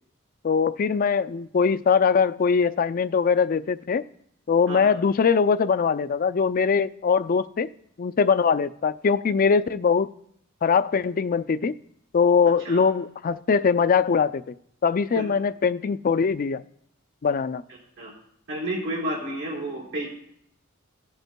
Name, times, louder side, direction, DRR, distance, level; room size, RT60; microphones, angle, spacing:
voice 1, 0.4-4.0 4.5-7.7 8.0-10.1 10.6-11.8 12.1-14.4 14.8-16.6 17.2-17.6, left 5 dB, 40° left, 12 dB, 0.4 m, -22 dB
voice 2, 18.5-20.1, right 1 dB, 65° right, -4 dB, 4.5 m, -30 dB
18.0 x 7.9 x 2.2 m, 0.71 s
head